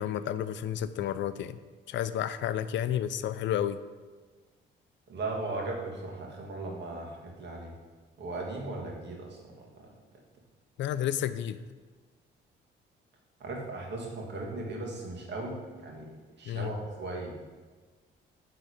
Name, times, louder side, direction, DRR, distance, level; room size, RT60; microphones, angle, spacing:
voice 1, 0.0-1.6 1.9-3.8 10.8-11.6 16.5-16.7, left 10 dB, 70° left, 13 dB, 0.4 m, -31 dB
voice 2, 5.1-7.7 8.2-9.7 13.4-16.1 16.4-17.3, right 2 dB, 60° right, -1 dB, 1.8 m, -37 dB
8.4 x 3.8 x 4.9 m, 1.4 s
cardioid pair, 90°, 20 cm